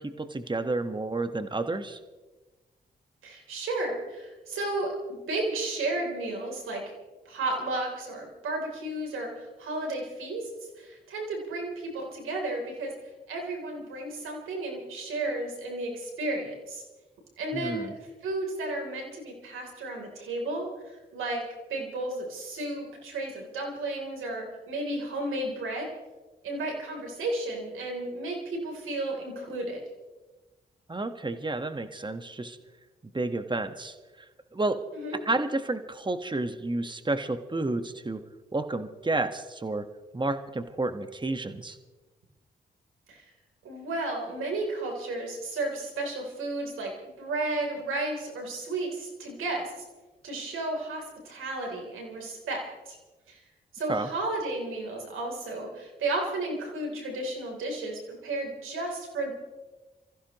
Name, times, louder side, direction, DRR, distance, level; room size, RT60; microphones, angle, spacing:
voice 1, 0.0-2.0 17.5-17.9 30.9-32.6 33.1-34.8 35.2-38.2 38.5-39.9 40.1-41.8 53.9-54.1, right 2 dB, 25° right, 8 dB, 1.5 m, -31 dB
voice 2, 3.2-6.8 7.3-10.5 10.8-12.9 13.3-16.8 17.4-17.9 18.2-21.4 21.7-25.9 26.4-29.8 34.9-35.2 43.1-43.3 43.6-46.9 47.2-49.7 50.2-53.0 53.3-53.4 53.7-59.3, right 2 dB, 85° right, 1 dB, 3.6 m, -33 dB
26.5 x 15.0 x 3.1 m, 1.2 s
supercardioid pair, 45°, 20 cm